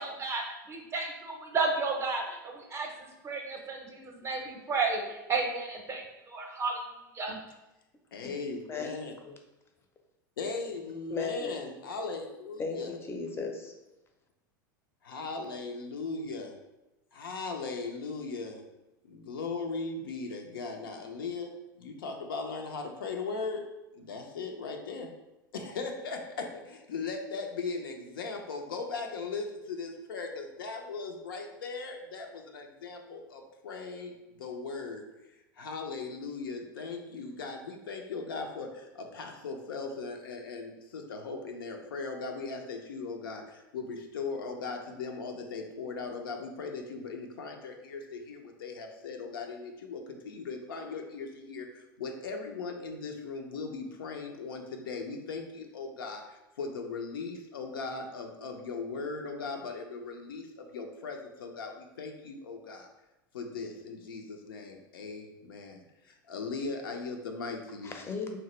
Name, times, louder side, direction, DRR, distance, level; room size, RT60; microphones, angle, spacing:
voice 1, 0.0-6.8 7.1-7.4, right 4 dB, 25° right, 2 dB, 0.6 m, -33 dB
voice 2, 8.1-9.2 10.4-13.0 15.0-16.6 17.1-18.6 19.0-21.5 21.8-23.6 23.9-25.1 25.5-35.1 35.6-62.9 63.3-67.9, left 4 dB, 85° left, 3 dB, 0.4 m, -38 dB
voice 3, 11.1-11.6 12.6-13.7 67.8-68.4, left 4 dB, 20° left, 3 dB, 0.5 m, -36 dB
2.9 x 2.1 x 3.0 m, 0.97 s
hypercardioid pair, 100°, 11 cm